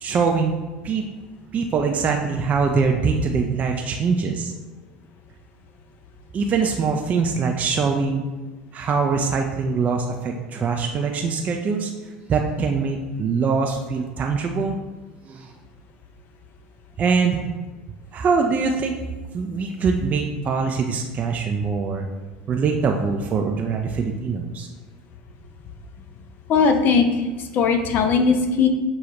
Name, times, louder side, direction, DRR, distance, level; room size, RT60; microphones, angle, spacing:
voice 1, 0.0-0.5 0.8-1.1 1.5-4.5 6.3-8.2 8.7-11.9 12.3-14.8 15.2-15.5 17.0-17.4 18.1-19.0 19.3-22.1 22.5-24.7, right 5 dB, 35° right, 2 dB, 0.4 m, -23 dB
voice 2, 26.5-28.7, left 5 dB, 50° left, 6 dB, 0.6 m, -19 dB
6.3 x 2.3 x 2.9 m, 1.2 s
hypercardioid pair, 80°, 4 cm